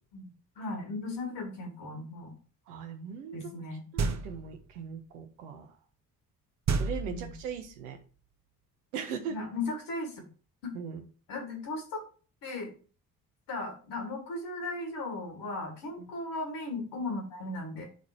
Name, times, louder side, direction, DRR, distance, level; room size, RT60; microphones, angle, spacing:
voice 1, 0.1-2.3 3.3-3.9 7.1-7.4 9.3-10.3 10.6-10.7 11.3-12.0 12.4-12.7 13.5-17.9, left 2 dB, 60° left, 2 dB, 3.7 m, -37 dB
voice 2, 2.7-3.5 3.9-5.7 6.7-8.0 8.9-9.4 10.7-11.0 16.0-16.1, right 6 dB, 75° right, 6 dB, 1.5 m, -39 dB
sound 1, 4.0-4.6 6.7-7.7, right 4 dB, 35° right, 1.2 m, -31 dB
11.0 x 4.2 x 4.8 m, 0.36 s
figure-of-eight pair, 45°, 47 cm